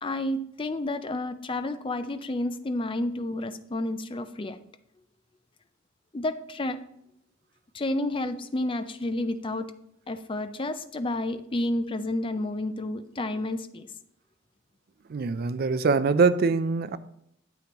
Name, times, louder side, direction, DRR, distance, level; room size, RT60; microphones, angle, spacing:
voice 1, 0.0-4.6 6.1-6.8 7.7-9.7 10.1-13.9, left 1 dB, 25° left, 0.4 m, -30 dB
voice 2, 15.1-17.0, right 4 dB, 45° right, 0.4 m, -23 dB
9.4 x 8.3 x 2.9 m
head